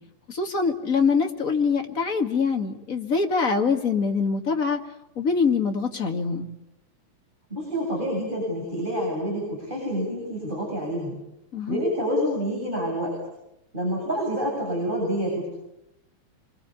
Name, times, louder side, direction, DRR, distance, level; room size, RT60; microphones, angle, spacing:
voice 1, 0.3-4.8 5.2-6.5 11.5-11.8, left 5 dB, 30° left, 4 dB, 2.1 m, -24 dB
voice 2, 7.5-11.2 11.7-13.2 13.7-15.5, equal, 15° right, -2 dB, 8.1 m, -27 dB
27.0 x 22.5 x 8.4 m, 0.85 s
omnidirectional pair, 3.3 m